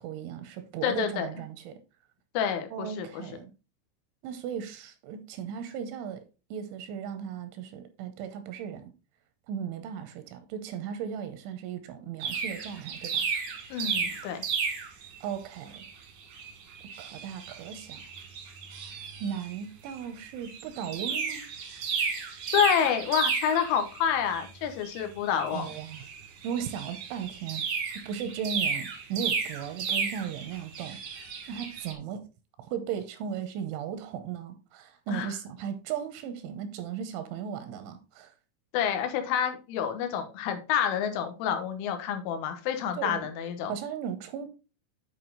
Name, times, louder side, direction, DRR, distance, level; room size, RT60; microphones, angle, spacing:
voice 1, 0.0-1.8 2.7-3.5 4.2-6.2 6.5-8.9 9.5-13.3 15.2-15.9 17.0-18.1 19.2-21.5 25.5-26.0 26.4-27.6 28.0-31.0 31.5-32.3 32.6-38.3 42.9-43.3 43.7-44.5, right 8 dB, 85° right, 3.0 m, -36 dB
voice 2, 0.8-1.3 2.4-3.2 13.7-14.5 22.5-25.7 35.1-35.3 38.7-43.8, left 8 dB, 85° left, 3.6 m, -28 dB
sound 1, 12.2-15.2 15.7-15.9 16.2-19.6 19.9-20.0 20.4-31.9, right 6 dB, 65° right, 1.9 m, -33 dB
9.7 x 4.7 x 3.8 m
omnidirectional pair, 5.7 m